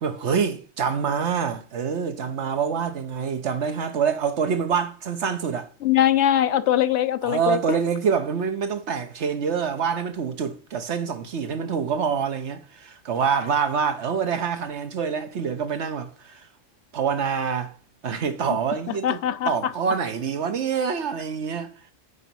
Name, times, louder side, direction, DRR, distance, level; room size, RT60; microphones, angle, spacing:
voice 1, 0.0-5.7 7.2-16.4 16.9-17.7 18.0-19.2 19.4-21.9, right 6 dB, 85° right, 1.3 m, -26 dB
voice 2, 5.8-7.8 18.5-18.6 18.9-19.7, left 11 dB, 85° left, 1.0 m, -22 dB
9.0 x 4.1 x 6.1 m
omnidirectional pair, 1.1 m